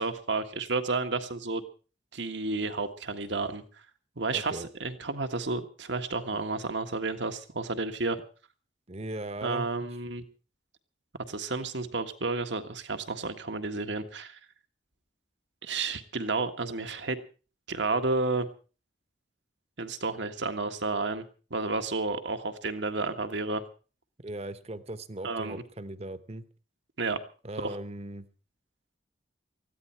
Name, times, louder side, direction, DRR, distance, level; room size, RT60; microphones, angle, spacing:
voice 1, 0.0-1.6 2.1-3.6 4.2-8.2 9.4-10.2 11.3-14.4 15.6-17.2 17.7-18.5 19.8-21.2 21.5-23.6 25.2-25.6 27.0-27.2 27.6-27.8, right 3 dB, 75° right, 7 dB, 1.7 m, -31 dB
voice 2, 4.3-4.7 8.9-9.7 24.2-26.4 27.4-28.3, right 1 dB, 35° right, 13 dB, 1.0 m, -38 dB
19.5 x 14.5 x 4.5 m, 0.36 s
head